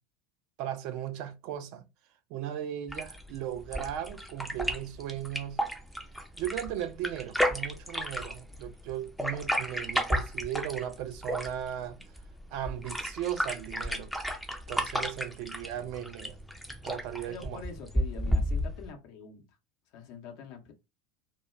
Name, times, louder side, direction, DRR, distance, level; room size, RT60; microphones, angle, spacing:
voice 1, 0.6-1.8 2.3-5.6 6.4-12.1 12.5-14.1 14.7-16.4 16.8-17.6, right 11 dB, 50° right, 0.4 m, -37 dB
sound 1, 2.9-18.9, equal, ahead, 0.5 m, -33 dB
voice 2, 17.2-19.4 19.9-20.7, left 6 dB, 50° left, 0.7 m, -45 dB
2.2 x 2.2 x 3.1 m
figure-of-eight pair, 75°, 0 cm